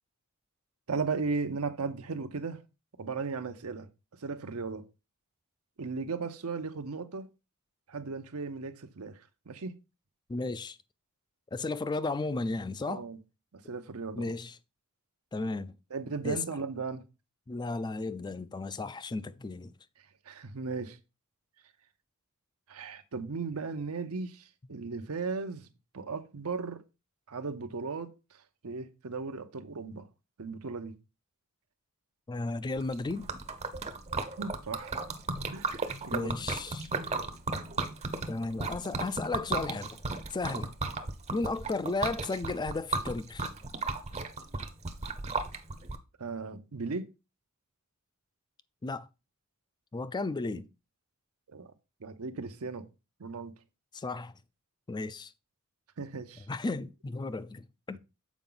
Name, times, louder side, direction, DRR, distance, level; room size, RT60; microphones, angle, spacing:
voice 1, 0.9-2.6 3.0-3.9 4.2-4.8 5.8-7.3 7.9-9.8 12.8-13.2 13.5-14.4 15.9-17.0 20.0-21.0 22.7-25.7 25.9-26.8 27.3-30.1 30.4-31.0 34.4-35.0 35.5-36.3 46.2-47.1 50.5-50.6 51.5-51.7 52.0-52.9 53.2-53.5 56.0-56.5 57.9-58.0, right 4 dB, 80° right, 0.8 m, -36 dB
voice 2, 10.3-10.8 11.5-13.0 14.2-14.5 15.3-15.7 16.2-16.4 17.5-19.7 32.3-33.3 36.1-36.9 38.3-40.0 40.3-40.7 41.3-43.5 48.8-49.1 49.9-50.6 53.9-54.3 54.9-55.3 56.5-58.0, left 3 dB, 20° left, 0.3 m, -34 dB
Liquid, 32.8-46.0, right 3 dB, 30° right, 0.7 m, -35 dB
7.2 x 4.7 x 3.9 m
head